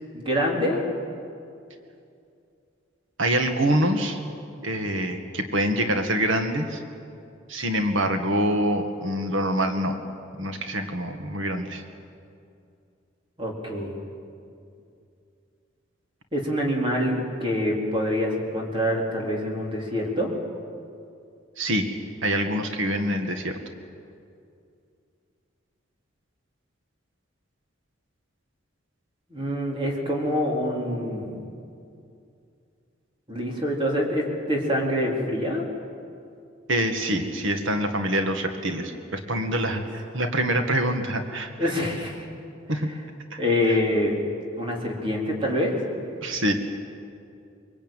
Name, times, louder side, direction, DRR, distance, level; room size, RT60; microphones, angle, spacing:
voice 1, 0.1-0.9 13.4-14.0 16.3-20.3 29.3-31.4 33.3-35.7 39.7-39.8 41.6-42.3 43.4-44.2 44.6-45.9, left 1 dB, 25° right, -1 dB, 4.1 m, -26 dB
voice 2, 3.2-4.2 4.6-6.8 7.5-10.0 10.4-11.8 21.6-21.9 22.2-23.6 36.7-41.7 42.7-42.9 43.3-43.4 46.2-46.5, right 1 dB, 80° right, 6 dB, 1.9 m, -25 dB
24.0 x 23.5 x 9.1 m, 2.5 s
head